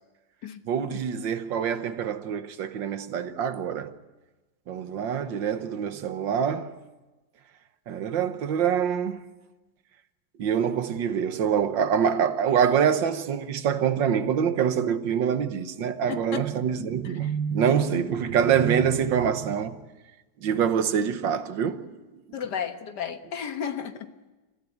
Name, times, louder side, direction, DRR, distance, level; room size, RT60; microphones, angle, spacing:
voice 1, 0.7-3.9 4.7-6.8 7.9-9.3 10.4-19.8 20.4-21.9, right 8 dB, 85° right, 1.8 m, -25 dB
voice 2, 16.1-16.5 17.0-17.3 22.3-24.3, left 8 dB, 65° left, 1.8 m, -34 dB
28.5 x 15.0 x 9.3 m
omnidirectional pair, 2.0 m